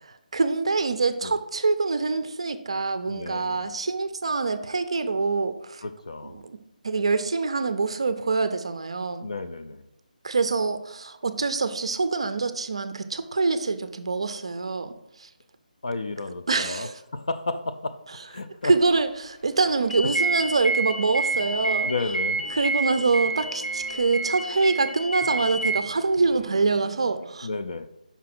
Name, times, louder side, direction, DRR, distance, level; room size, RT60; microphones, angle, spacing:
voice 1, 0.3-5.8 6.2-6.6 6.8-9.3 10.2-14.9 15.2-15.3 16.5-17.0 18.6-21.9 22.6-27.5, right 3 dB, 40° right, 10 dB, 0.5 m, -25 dB
voice 2, 3.1-3.7 5.8-6.4 9.2-9.8 15.8-18.0 18.3-18.7 21.6-22.5 27.4-27.9, left 3 dB, 45° left, 10 dB, 0.4 m, -32 dB
sound 1, 19.6-27.4, right 2 dB, 5° right, 0.8 m, -46 dB
sound 2, 19.9-25.8, right 3 dB, 80° left, 1.0 m, -28 dB
5.6 x 4.8 x 5.9 m, 0.88 s
hypercardioid pair, 180°, 5 cm